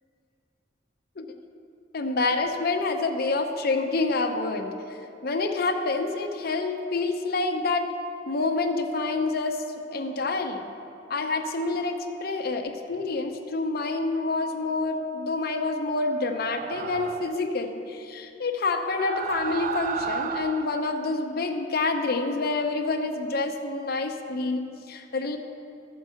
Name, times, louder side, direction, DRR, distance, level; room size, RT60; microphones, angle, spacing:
voice 1, 1.9-4.7 5.2-7.9 8.3-9.6 9.9-10.6 11.1-25.4, left 3 dB, 55° left, 4 dB, 0.8 m, -27 dB
sound 1, 16.3-17.5 18.7-20.9, right 6 dB, 45° right, 0.3 m, -33 dB
13.5 x 4.5 x 6.4 m, 2.6 s
head